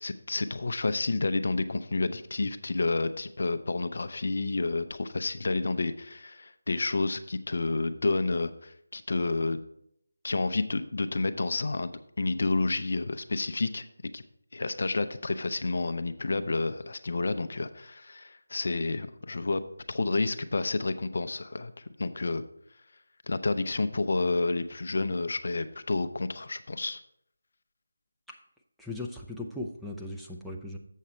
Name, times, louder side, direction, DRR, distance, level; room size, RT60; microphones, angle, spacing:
voice 1, 0.0-9.6 10.2-11.9 12.2-13.9 14.1-14.2 14.5-19.6 19.9-22.4 23.3-27.0, left 3 dB, 60° left, 10 dB, 0.5 m, -30 dB
voice 2, 28.8-30.8, left 2 dB, ahead, -2 dB, 0.5 m, -38 dB
7.3 x 6.5 x 4.2 m, 0.72 s
figure-of-eight pair, 160°, 0 cm